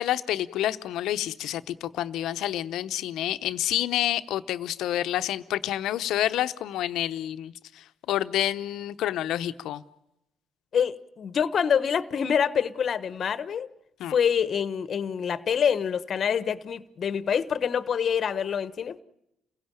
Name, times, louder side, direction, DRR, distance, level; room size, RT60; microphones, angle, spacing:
voice 1, 0.0-9.8 14.0-14.1, left 12 dB, 75° left, 0.8 m, -28 dB
voice 2, 10.7-13.7 14.1-19.0, left 7 dB, 55° left, 1.0 m, -26 dB
28.5 x 16.5 x 9.0 m
supercardioid pair, 65°, 0 cm